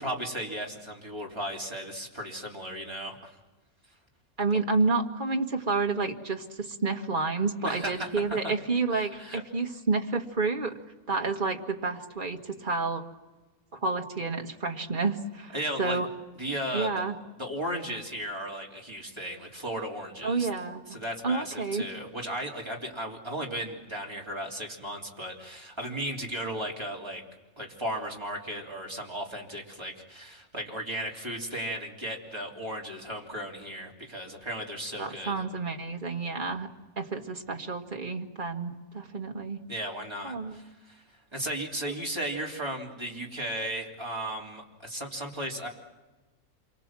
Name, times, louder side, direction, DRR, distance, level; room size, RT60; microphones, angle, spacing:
voice 1, 0.0-3.3 7.6-8.5 8.9-9.4 15.5-16.0 16.4-17.0 17.4-20.5 20.9-27.2 27.6-35.4 39.7-41.0 41.3-45.7, right 1 dB, 20° right, -1 dB, 3.3 m, -35 dB
voice 2, 4.4-10.7 11.1-13.0 13.7-16.1 16.7-17.2 20.2-21.0 21.2-21.8 35.0-36.7 37.0-39.6 40.2-40.6, right 4 dB, 35° right, 3 dB, 1.8 m, -30 dB
27.5 x 24.0 x 7.5 m, 1.2 s
omnidirectional pair, 1.5 m